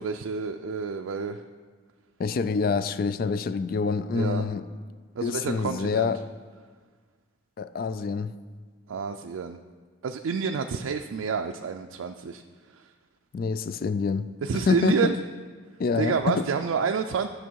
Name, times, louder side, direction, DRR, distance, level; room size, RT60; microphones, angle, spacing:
voice 1, 0.0-1.4 4.1-4.4 5.2-6.1 8.9-9.6 10.0-12.9 14.4-15.1 16.0-17.3, right 5 dB, 85° right, 4 dB, 0.4 m, -29 dB
voice 2, 2.2-4.7 5.2-6.2 7.6-8.4 13.3-14.3 14.7-15.1 15.8-16.5, left 5 dB, 45° left, 13 dB, 0.3 m, -26 dB
12.5 x 6.3 x 4.6 m, 1.5 s
head